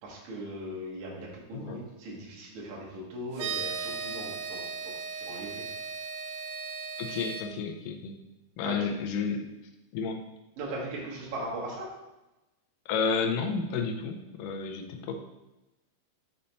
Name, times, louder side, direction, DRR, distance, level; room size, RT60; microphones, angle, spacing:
voice 1, 0.0-5.7 8.6-8.8 10.6-11.9, right 1 dB, 55° right, -4 dB, 2.8 m, -39 dB
voice 2, 1.5-1.8 7.0-8.1 8.6-9.4 9.9-10.2 12.9-15.1, left 5 dB, 75° left, 3 dB, 2.0 m, -31 dB
sound 1, 3.3-7.4, right 5 dB, 80° right, 1.5 m, -36 dB
6.6 x 5.6 x 4.2 m, 0.98 s
omnidirectional pair, 4.6 m